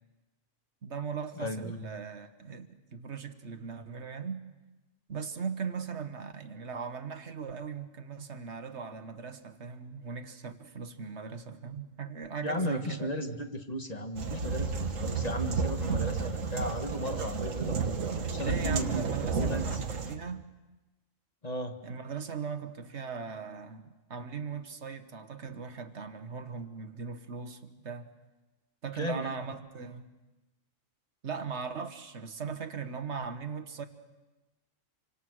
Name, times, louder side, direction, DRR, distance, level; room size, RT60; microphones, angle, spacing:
voice 1, 0.8-4.4 5.1-13.1 18.4-20.4 21.8-28.1 28.8-30.1 31.2-33.8, right 6 dB, 60° right, 9 dB, 1.6 m, -39 dB
voice 2, 1.4-1.9 12.4-17.9 18.3-19.0 19.4-19.8 21.4-21.7 29.0-29.4, equal, 30° left, 5 dB, 1.7 m, -35 dB
sound 1, 14.2-20.2, right 5 dB, 80° right, 1.7 m, -32 dB
27.0 x 25.0 x 6.4 m, 1.1 s
omnidirectional pair, 1.3 m